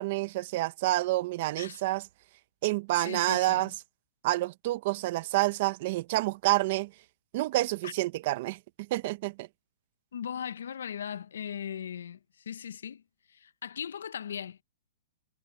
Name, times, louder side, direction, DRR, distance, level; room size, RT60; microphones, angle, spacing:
voice 1, 0.0-2.1 2.6-3.7 4.2-6.9 7.3-8.6 8.9-9.5, right 18 dB, 40° right, 0.6 m, -28 dB
voice 2, 3.0-3.7 7.8-7.9 10.1-13.0 13.3-14.6, left 8 dB, 80° left, 0.6 m, -38 dB
hypercardioid pair, 165°, 0 cm